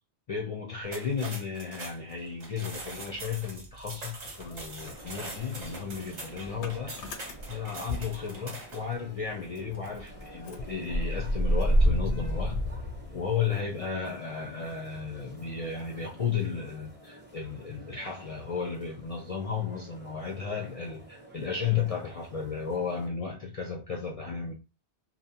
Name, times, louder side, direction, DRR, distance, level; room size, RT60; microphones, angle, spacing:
voice 1, 0.3-7.0 7.5-12.6 13.1-24.5, left 6 dB, 55° left, 0.4 m, -34 dB
sound 1, 0.8-8.9, right 2 dB, 45° right, 0.7 m, -43 dB
Motor vehicle (road) / Engine starting, 2.8-4.0 4.2-8.9 9.2-9.3 9.6-13.7, equal, 85° left, 0.9 m, -30 dB
sound 2, 4.8-23.1, right 1 dB, 10° right, 0.6 m, -51 dB
2.7 x 2.0 x 2.7 m
omnidirectional pair, 1.1 m